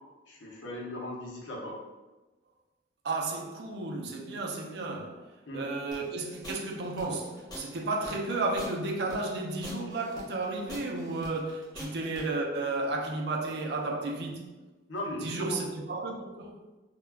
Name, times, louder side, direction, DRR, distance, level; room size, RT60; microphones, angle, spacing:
voice 1, 0.3-1.8 5.5-5.7 14.9-15.6, left 1 dB, 85° left, 0.6 m, -37 dB
voice 2, 3.0-5.3 5.5-14.5 15.2-16.6, right 2 dB, 60° right, 0.4 m, -33 dB
sound 1, 5.9-12.2, left 1 dB, 20° left, 0.6 m, -45 dB
2.2 x 2.2 x 3.3 m
head